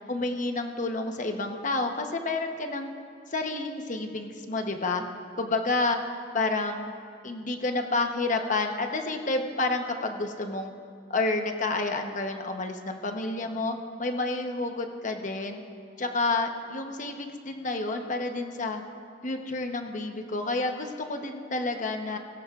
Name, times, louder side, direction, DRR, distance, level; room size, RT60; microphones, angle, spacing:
voice 1, 0.1-2.9 3.3-5.0 5.4-6.0 6.3-6.9 7.2-10.7 11.1-15.6 16.0-18.8 19.2-22.2, left 3 dB, 45° left, 4 dB, 1.0 m, -29 dB
17.0 x 17.0 x 2.5 m, 2.2 s
head